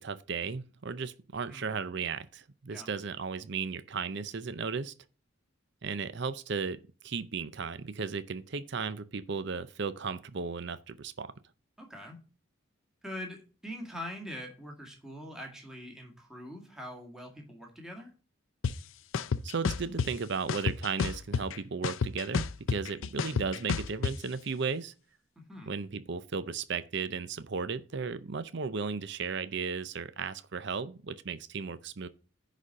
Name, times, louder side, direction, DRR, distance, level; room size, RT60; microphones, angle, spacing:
voice 1, 0.0-4.9 5.8-11.3 19.4-24.9 25.7-32.1, right 5 dB, 55° right, 0.6 m, -35 dB
voice 2, 11.8-12.2 13.0-18.1 25.4-25.7, equal, 5° right, 1.9 m, -43 dB
sound 1, 18.6-18.7 19.1-20.1 20.5-21.6 21.8-24.1, left 5 dB, 75° left, 0.5 m, -29 dB
10.0 x 4.2 x 6.3 m
head